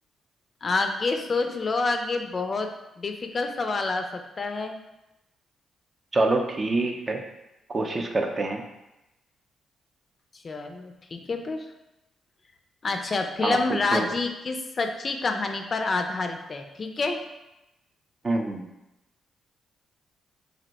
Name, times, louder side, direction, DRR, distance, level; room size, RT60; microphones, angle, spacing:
voice 1, 0.6-2.7 3.0-4.8 10.4-11.7 12.8-17.2, left 3 dB, 45° left, 5 dB, 0.3 m, -28 dB
voice 2, 6.1-7.2 7.7-8.6 13.4-14.1 18.2-18.7, right 2 dB, 40° right, 3 dB, 0.4 m, -26 dB
2.6 x 2.1 x 4.0 m, 0.93 s
cardioid pair, 70°, 0 cm